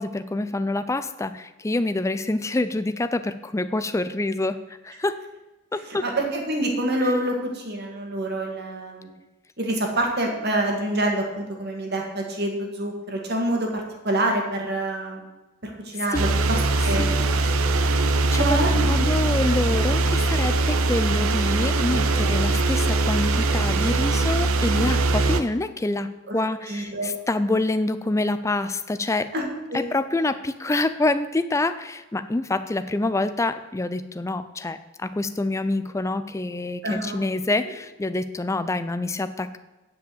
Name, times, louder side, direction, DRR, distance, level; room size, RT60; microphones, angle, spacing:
voice 1, 0.0-5.2 5.7-6.0 7.0-7.1 15.9-16.3 16.8-17.2 17.8-17.9 18.3-18.4 18.7-29.3 29.7-39.6, left 2 dB, 15° left, 11 dB, 0.4 m, -26 dB
voice 2, 6.0-9.1 9.6-15.2 15.6-16.6 16.8-17.1 18.3-18.7 26.3-26.4 26.7-27.1 29.3-29.9 36.8-37.2, right 1 dB, 45° right, 1 dB, 1.9 m, -26 dB
sound 1, 16.1-25.4, right 2 dB, 70° right, 0.7 m, -21 dB
9.4 x 5.3 x 7.8 m, 1.1 s
head